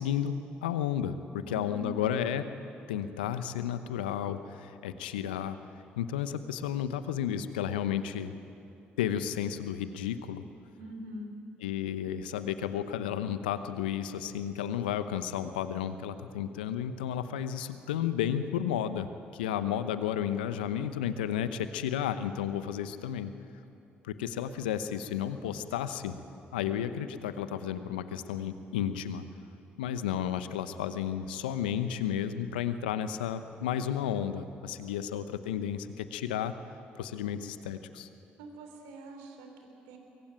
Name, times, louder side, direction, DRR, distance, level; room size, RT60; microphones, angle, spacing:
voice 1, 0.0-2.4 2.9-5.6 6.0-8.3 9.0-10.4 11.6-23.3 24.0-26.2 26.5-29.2 29.8-36.5 36.9-38.1, left 9 dB, 85° left, 11 dB, 0.9 m, -32 dB
voice 2, 1.4-2.1 10.8-11.3 26.7-26.8 38.4-40.0, right 1 dB, 80° right, 4 dB, 3.6 m, -44 dB
23.5 x 20.0 x 9.1 m, 2.8 s
hypercardioid pair, 50°, 5 cm